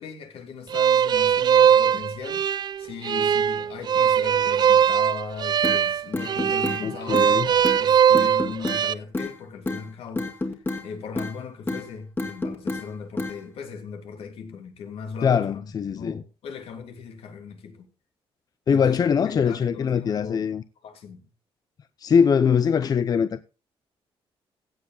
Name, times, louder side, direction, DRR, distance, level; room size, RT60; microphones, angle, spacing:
voice 1, 0.0-2.4 2.8-17.9 18.7-20.5 20.8-21.2, left 6 dB, 75° left, 3.0 m, -38 dB
sound 1, 0.7-8.9, right 8 dB, 45° right, 0.5 m, -20 dB
sound 2, 5.6-5.8 6.1-6.8 7.1-7.3 7.6-7.8 8.1-8.8 9.1-9.3 9.7-9.8 10.2-10.9 11.2-11.4 11.7-11.9 12.2-12.8 13.2-13.4, left 2 dB, 20° left, 2.3 m, -29 dB
voice 2, 6.8-7.5 15.2-16.2 18.7-20.6 22.0-23.4, left 7 dB, 40° left, 0.6 m, -22 dB
16.0 x 7.8 x 3.9 m
cardioid pair, 140°, 10 cm